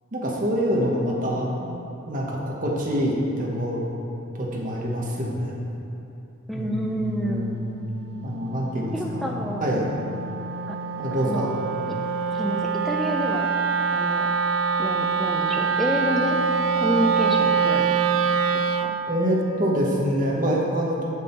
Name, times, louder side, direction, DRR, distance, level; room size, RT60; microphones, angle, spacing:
voice 1, 0.1-1.8 2.0-3.9 4.4-5.6 6.5-7.8 8.2-9.3 9.6-9.9 11.0-11.5 19.1-21.0, equal, 40° right, -3 dB, 1.0 m, -26 dB
voice 2, 6.5-7.6 8.9-9.8 10.7-10.8 11.2-11.6 11.9-12.0 12.3-13.5 13.9-14.3 14.8-16.4 16.8-18.2 18.5-19.0, equal, ahead, 0 dB, 0.5 m, -28 dB
Wind instrument woodwind instrument, 7.4-19.0, right 5 dB, 65° right, 0.4 m, -25 dB
7.2 x 6.1 x 4.4 m, 2.8 s
head